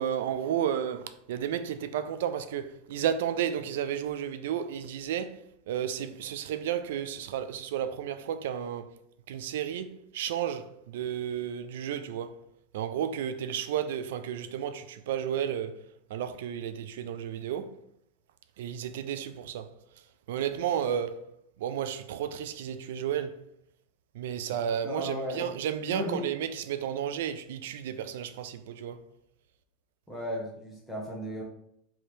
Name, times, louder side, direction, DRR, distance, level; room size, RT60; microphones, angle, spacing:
voice 1, 0.0-5.4 5.7-8.9 9.3-12.4 12.7-15.8 16.1-17.7 18.6-19.7 20.3-21.3 21.6-23.4 24.1-29.0, right 9 dB, 85° right, 0.3 m, -32 dB
voice 2, 24.5-25.5 25.9-26.2 30.1-31.4, equal, ahead, 0.9 m, -35 dB
3.3 x 2.8 x 4.4 m
supercardioid pair, 155°, 0 cm